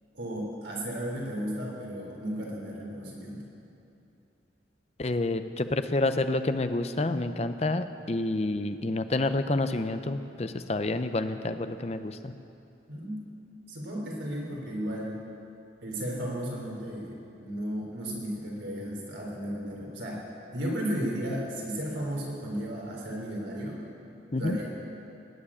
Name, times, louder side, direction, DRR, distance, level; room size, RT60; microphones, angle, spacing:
voice 1, 0.1-3.5 12.9-13.2 13.7-15.2 15.8-20.2 20.5-23.8 24.3-24.7, equal, 85° right, -2 dB, 3.7 m, -34 dB
voice 2, 5.0-12.3 24.3-24.6, left 2 dB, 35° left, 10 dB, 0.6 m, -29 dB
18.5 x 7.4 x 8.7 m, 2.8 s
head